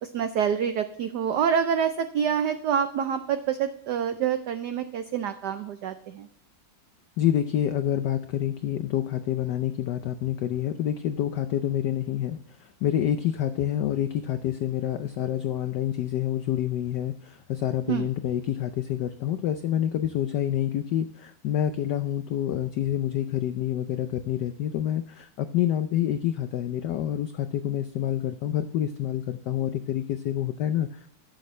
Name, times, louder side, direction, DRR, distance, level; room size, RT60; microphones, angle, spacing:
voice 1, 0.0-6.3 17.9-18.1, right 8 dB, 85° right, 9 dB, 0.9 m, -27 dB
voice 2, 7.2-31.0, left 11 dB, 85° left, 10 dB, 0.9 m, -27 dB
11.5 x 7.6 x 3.2 m, 0.68 s
omnidirectional pair, 2.4 m